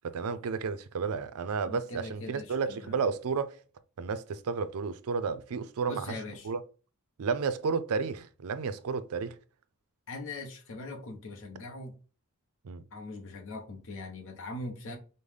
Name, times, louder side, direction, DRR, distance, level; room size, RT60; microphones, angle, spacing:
voice 1, 0.0-3.6 4.0-6.2 6.4-6.6 7.2-9.4 12.6-12.8, right 5 dB, 75° right, 0.4 m, -32 dB
voice 2, 1.6-3.0 5.9-6.5 10.1-11.9 12.9-15.0, left 2 dB, 60° left, 0.8 m, -41 dB
5.3 x 2.1 x 3.2 m
head